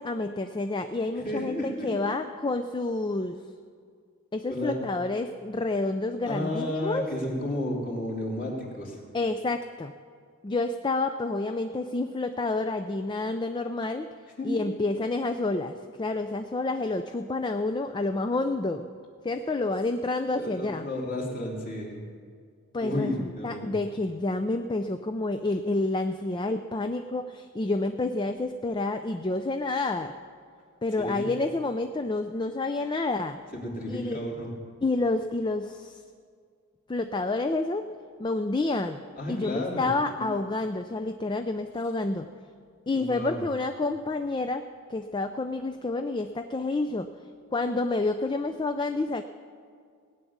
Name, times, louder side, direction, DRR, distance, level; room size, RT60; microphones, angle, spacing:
voice 1, 0.0-3.4 4.3-7.1 9.1-9.9 10.4-14.1 14.4-18.9 19.2-20.9 22.7-30.2 30.8-33.4 33.9-34.2 34.8-36.0 36.9-37.9 38.2-39.0 39.3-42.3 42.9-47.1 47.5-49.2, left 2 dB, 20° left, 8 dB, 0.4 m, -29 dB
voice 2, 1.2-2.2 4.5-4.7 6.3-9.0 14.4-14.6 20.4-22.0 22.8-23.7 31.0-31.3 33.5-34.5 39.2-39.8 40.2-40.3 42.9-43.4, left 1 dB, 40° left, -2 dB, 2.9 m, -32 dB
17.0 x 7.1 x 9.4 m, 2.1 s
head